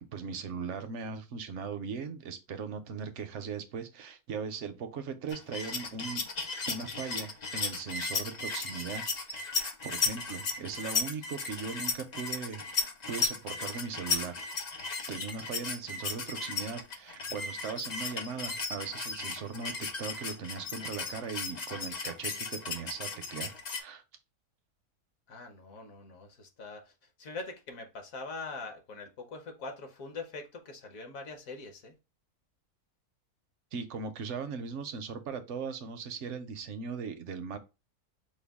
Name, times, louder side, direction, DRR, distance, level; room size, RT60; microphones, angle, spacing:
voice 1, 0.1-6.2 6.7-14.4 15.1-24.0 33.7-37.6, right 5 dB, 65° right, 0.7 m, -39 dB
sound 1, 5.3-23.8, left 4 dB, 90° left, 0.3 m, -35 dB
voice 2, 25.3-26.9 27.2-31.9, left 3 dB, 65° left, 1.3 m, -43 dB
5.2 x 2.2 x 3.4 m
omnidirectional pair, 1.6 m